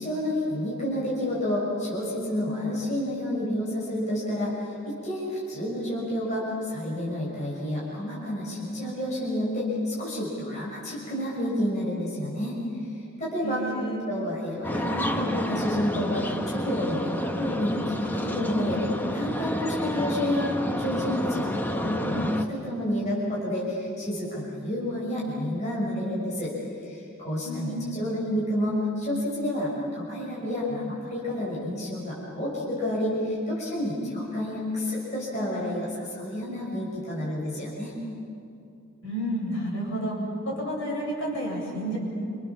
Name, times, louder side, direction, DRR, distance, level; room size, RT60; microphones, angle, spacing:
voice 1, 0.0-12.6 13.2-13.6 14.0-26.5 26.8-37.9, left 1 dB, 35° left, -6 dB, 6.2 m, -30 dB
voice 2, 13.4-14.1 27.4-28.0 39.0-40.2 40.4-42.0, right 1 dB, 60° left, -3 dB, 7.6 m, -31 dB
sound 1, 14.6-22.4, equal, 10° left, 1.2 m, -29 dB
29.0 x 27.0 x 7.3 m, 2.6 s
head